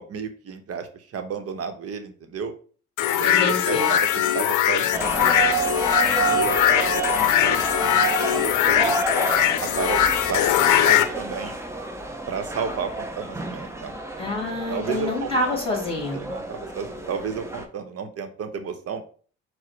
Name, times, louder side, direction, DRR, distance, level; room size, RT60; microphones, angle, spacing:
voice 1, 0.0-2.5 3.1-3.4 3.7-5.3 6.0-6.8 7.1-9.0 9.6-11.5 12.3-14.0 14.7-15.3 16.1-19.0, right 6 dB, 55° right, 8 dB, 0.8 m, -32 dB
sound 1, 3.0-11.1, left 11 dB, 80° left, 0.5 m, -21 dB
voice 2, 3.2-3.9 14.2-16.2, left 1 dB, 20° left, 0 dB, 2.1 m, -27 dB
sound 2, 4.9-17.6, right 4 dB, 10° right, 0.7 m, -29 dB
4.8 x 2.1 x 4.5 m, 0.42 s
cardioid pair, 90°, 30 cm